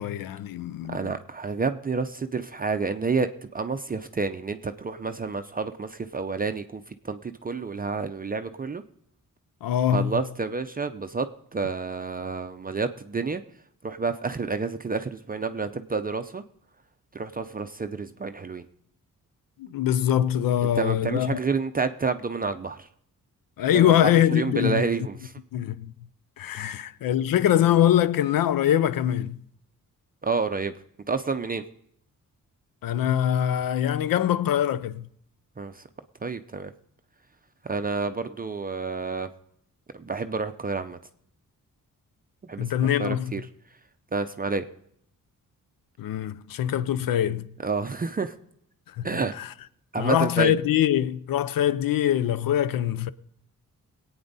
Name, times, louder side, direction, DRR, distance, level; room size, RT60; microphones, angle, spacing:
voice 1, 0.0-1.1 9.6-10.1 19.6-21.4 23.6-24.8 25.5-25.9 26.4-29.4 32.8-35.1 42.6-43.3 46.0-47.5 49.0-49.1 49.3-49.5 50.0-53.1, left 11 dB, 85° left, 0.6 m, -23 dB
voice 2, 0.9-8.8 9.9-13.4 13.8-16.4 17.1-18.6 20.6-22.9 23.7-25.3 26.6-26.8 30.2-30.7 31.1-31.6 35.6-35.8 36.2-36.7 37.6-39.3 39.9-41.0 42.5-42.6 43.0-43.4 44.1-44.7 47.6-48.3 49.0-49.3 49.9-50.5, right 4 dB, 25° right, 0.5 m, -29 dB
21.5 x 8.8 x 4.0 m
cardioid pair, 105°, 34 cm